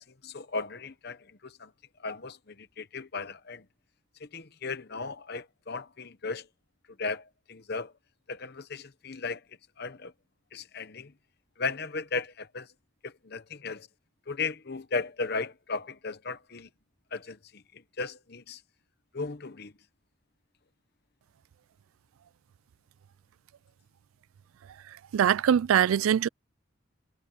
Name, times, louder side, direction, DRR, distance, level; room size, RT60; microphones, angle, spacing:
voice 1, 0.0-1.7 2.0-3.7 4.2-6.5 7.0-7.9 8.3-9.4 9.8-10.1 10.5-11.1 11.6-12.7 13.0-13.9 14.3-16.7 17.1-18.6 19.1-19.7, left 4 dB, 50° left, 0.9 m, -36 dB
voice 2, 25.1-26.3, right 9 dB, 85° right, 0.3 m, -22 dB
head